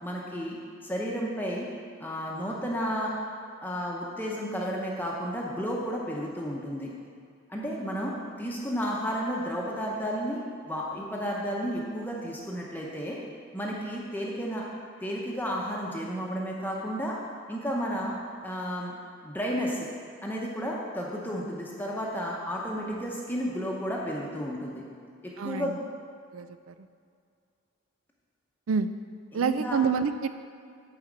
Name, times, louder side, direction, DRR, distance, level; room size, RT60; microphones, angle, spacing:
voice 1, 0.0-1.7 2.0-3.2 3.6-6.9 7.5-13.2 13.5-14.7 15.0-17.2 17.5-18.2 18.4-18.9 19.2-19.9 20.2-24.8 25.2-25.8 29.3-29.8, equal, 10° left, -3 dB, 0.8 m, -32 dB
voice 2, 25.4-25.8 26.3-26.7 28.7-28.9 29.3-30.3, right 6 dB, 85° right, 11 dB, 0.4 m, -27 dB
8.8 x 4.3 x 7.3 m, 2.2 s
head